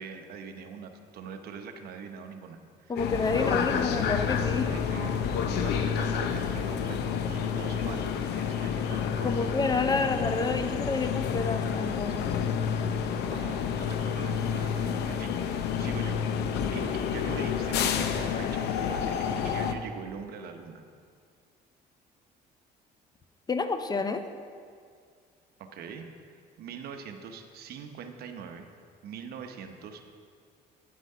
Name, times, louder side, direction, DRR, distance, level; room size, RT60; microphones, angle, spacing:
voice 1, 0.0-3.8 4.5-9.5 9.9-10.0 13.3-16.2 16.7-20.8 25.6-28.7 29.0-30.1, right 6 dB, 65° right, 6 dB, 1.0 m, -43 dB
voice 2, 2.9-4.7 9.2-12.3 23.5-24.2, left 4 dB, 25° left, 8 dB, 0.6 m, -29 dB
sound 1, 3.0-19.8, left 7 dB, 80° left, 0.7 m, -29 dB
9.5 x 8.2 x 5.5 m, 2.1 s
cardioid pair, 110°, 17 cm